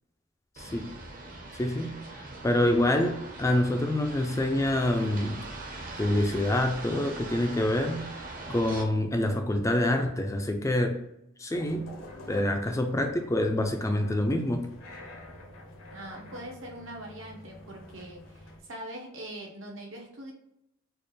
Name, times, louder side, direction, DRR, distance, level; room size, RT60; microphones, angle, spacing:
voice 1, 0.6-0.9 1.6-5.5 6.0-8.1 8.5-11.0 11.4-11.9 12.3-14.7, left 1 dB, 15° left, 4 dB, 0.3 m, -26 dB
sound 1, 0.6-8.8, right 2 dB, 40° right, 0.7 m, -42 dB
sound 2, 11.5-18.6, left 1 dB, 85° left, 0.9 m, -47 dB
voice 2, 15.9-20.3, right 1 dB, 75° right, 0 dB, 1.0 m, -42 dB
4.2 x 2.4 x 3.2 m, 0.81 s
head